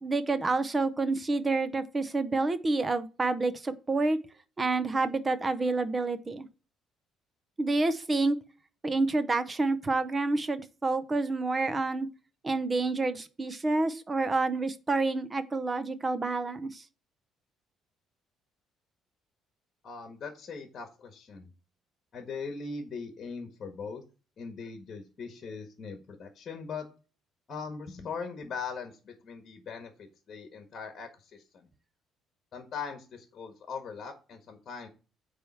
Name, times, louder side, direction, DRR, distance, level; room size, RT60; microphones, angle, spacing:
voice 1, 0.0-4.2 4.6-6.5 7.6-8.4 8.8-12.1 12.4-16.8, right 3 dB, 15° right, 0.7 m, -28 dB
voice 2, 19.8-21.5 22.1-24.0 24.4-26.9 27.5-31.7 32.5-34.9, left 5 dB, 30° left, 1.5 m, -40 dB
9.3 x 3.5 x 5.5 m
cardioid pair, 175°, 0 cm